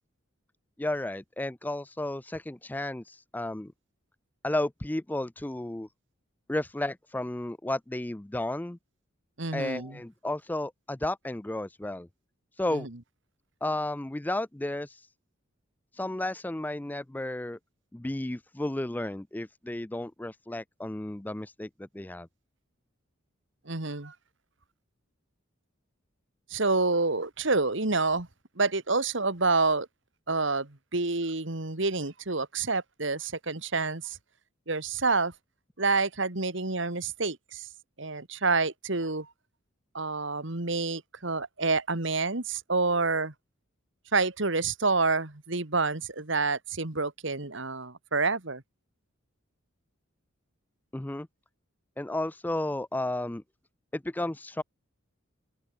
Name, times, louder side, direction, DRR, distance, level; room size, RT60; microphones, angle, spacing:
voice 1, 0.8-3.7 4.4-5.9 6.5-8.8 9.5-12.1 12.6-12.9 13.6-15.0 15.9-17.6 17.9-22.3 50.9-51.3 52.0-53.4 53.9-54.6, left 1 dB, 10° left, 0.4 m, -33 dB
voice 2, 9.4-10.0 12.7-12.9 23.7-24.1 26.5-28.3 28.6-29.9 30.3-34.2 34.7-35.3 35.8-37.7 38.0-39.3 39.9-43.3 44.1-48.6, right 3 dB, 65° right, 2.2 m, -28 dB
open air
head